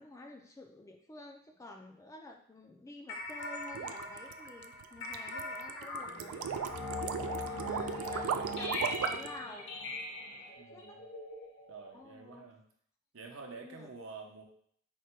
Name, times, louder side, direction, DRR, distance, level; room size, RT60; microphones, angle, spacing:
voice 1, 0.0-6.5 7.4-9.7 10.7-11.0 11.9-12.5 13.6-13.9, left 2 dB, 15° left, 3 dB, 0.3 m, -50 dB
sound 1, 3.1-12.0, left 2 dB, 60° left, 0.8 m, -40 dB
sound 2, 3.3-9.3, right 7 dB, 90° right, 0.3 m, -37 dB
voice 2, 10.6-11.0 11.7-12.6 13.1-14.4, right 4 dB, 70° right, 2 dB, 0.7 m, -49 dB
4.5 x 2.2 x 4.4 m, 0.63 s
head